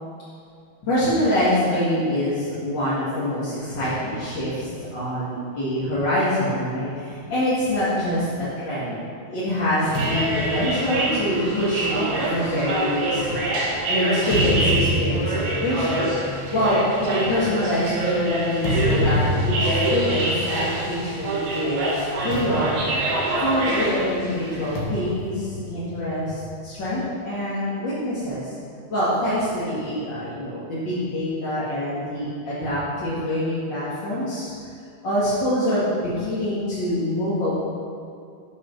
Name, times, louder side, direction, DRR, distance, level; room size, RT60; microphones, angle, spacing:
voice 1, 0.8-8.3 8.6-9.0 9.3-13.4 13.9-16.1 16.5-22.8 23.4-28.6 28.9-34.7 35.0-37.5, left 1 dB, 40° left, -11 dB, 1.9 m, -25 dB
sound 1, 9.8-24.8, right 2 dB, 75° right, 3.8 m, -26 dB
sound 2, 9.9-13.5 14.1-21.5 21.7-22.0 22.3-23.9 24.8-26.5, left 1 dB, 80° left, 3.2 m, -28 dB
11.0 x 6.0 x 5.8 m, 2.3 s
omnidirectional pair, 4.3 m